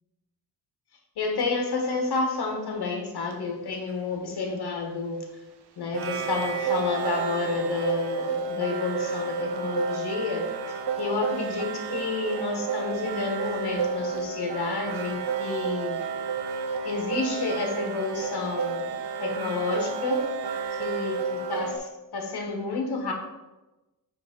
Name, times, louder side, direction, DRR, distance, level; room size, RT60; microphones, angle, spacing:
voice 1, 1.2-5.2 5.8-16.0 16.8-18.9 19.2-20.2 20.8-23.1, left 4 dB, 75° left, 2 dB, 1.4 m, -30 dB
sound 1, 3.3-3.4 5.9-21.8, right 5 dB, 90° right, 0.8 m, -31 dB
7.9 x 3.4 x 5.1 m, 1.1 s
wide cardioid pair, 160°, 39 cm